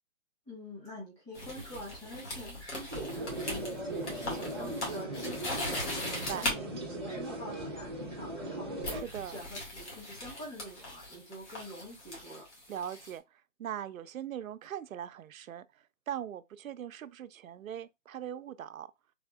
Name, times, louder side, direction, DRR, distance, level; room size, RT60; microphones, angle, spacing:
voice 1, 0.5-12.4, equal, 10° left, 1.7 m, -46 dB
sound 1, 1.3-6.6 7.8-8.1 8.8-13.1, left 1 dB, 55° left, 2.0 m, -39 dB
sound 2, 2.9-9.0, right 1 dB, 20° right, 0.5 m, -38 dB
voice 2, 6.0-6.5 8.9-9.4 12.7-15.7 16.1-18.9, right 10 dB, 80° right, 0.5 m, -40 dB
3.6 x 3.4 x 2.3 m
hypercardioid pair, 165°, 40 cm